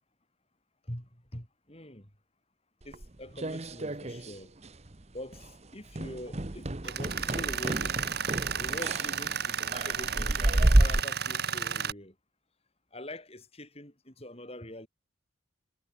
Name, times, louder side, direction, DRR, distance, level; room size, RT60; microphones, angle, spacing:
voice 1, 0.8-2.1 2.8-4.5 5.1-8.0 8.6-12.2 12.9-14.9, left 1 dB, 30° left, 7.1 m, -44 dB
sound 1, 2.9-4.4 4.6-5.0 5.3-5.5 5.9-11.0, right 1 dB, 35° right, 1.1 m, -29 dB
Tools, 6.8-11.9, right 7 dB, 55° right, 2.8 m, -33 dB
head